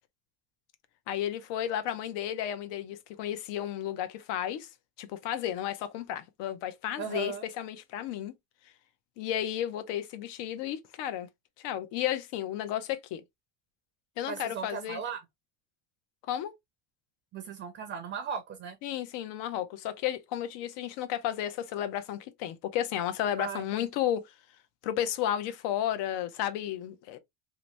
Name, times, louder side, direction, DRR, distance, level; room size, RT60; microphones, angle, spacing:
voice 1, 1.1-4.7 5.0-8.3 9.2-11.3 11.6-13.2 14.2-15.0 16.2-16.5 18.8-24.3 24.8-27.2, left 11 dB, 80° left, 0.7 m, -33 dB
voice 2, 7.0-7.5 14.3-15.2 17.3-18.8 23.4-23.9, right 6 dB, 30° right, 0.4 m, -37 dB
2.9 x 2.6 x 3.1 m
cardioid pair, 175°, 41 cm